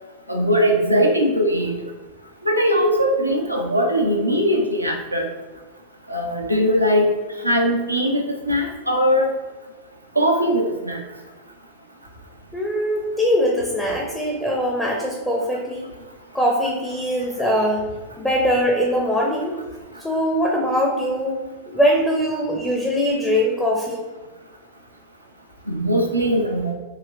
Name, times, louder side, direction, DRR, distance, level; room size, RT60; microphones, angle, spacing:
voice 1, 0.3-1.8 2.4-5.3 6.1-7.1 7.4-9.3 10.2-11.0 25.7-26.7, equal, 85° right, 0 dB, 0.6 m, -20 dB
voice 2, 12.5-15.9 16.3-17.9 18.2-19.6 20.0-21.4 21.7-24.0, equal, 5° left, -2 dB, 0.6 m, -21 dB
4.8 x 2.9 x 2.9 m, 1.2 s
figure-of-eight pair, 90°, 0 cm